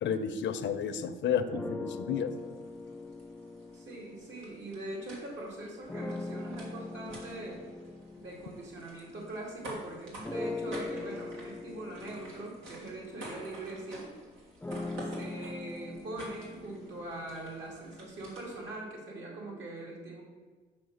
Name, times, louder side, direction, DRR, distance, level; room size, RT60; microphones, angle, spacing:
voice 1, 0.0-2.3, left 7 dB, 65° left, 10 dB, 0.6 m, -31 dB
sound 1, 1.5-5.1 5.9-9.7 10.2-18.2, left 2 dB, 10° left, 0.3 m, -42 dB
sound 2, 2.3-18.8, right 1 dB, 90° right, 2.0 m, -49 dB
voice 2, 3.7-7.6 8.2-14.0 15.0-20.2, right 2 dB, 65° right, -2 dB, 2.5 m, -42 dB
5.9 x 5.0 x 6.4 m, 1.4 s
cardioid pair, 90°, 20 cm